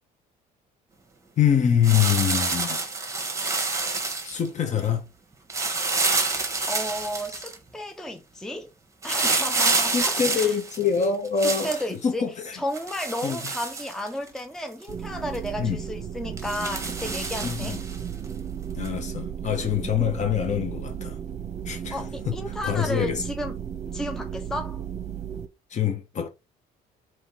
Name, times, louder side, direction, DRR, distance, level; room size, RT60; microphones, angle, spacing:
voice 1, 1.4-2.8 4.2-5.0 9.9-11.8 12.0-12.6 13.2-13.4 15.6-15.8 17.4-17.8 18.7-21.2 21.6-21.9 22.3-22.4 22.6-23.2 25.7-26.3, left 8 dB, 45° left, 1.2 m, -25 dB
sound 1, 1.8-4.5 5.5-7.5 9.0-11.8 12.7-14.4 14.8-14.9 15.3-15.5 16.4-18.0 18.8-18.9, right 3 dB, 20° right, 1.2 m, -27 dB
voice 2, 6.7-8.7 9.0-10.5 11.4-12.3 12.5-17.8 21.9-23.6 23.9-24.8, equal, 5° left, 0.5 m, -33 dB
sound 2, 14.9-25.5, right 8 dB, 40° right, 0.8 m, -34 dB
3.6 x 3.1 x 4.6 m
cardioid pair, 110°, 17 cm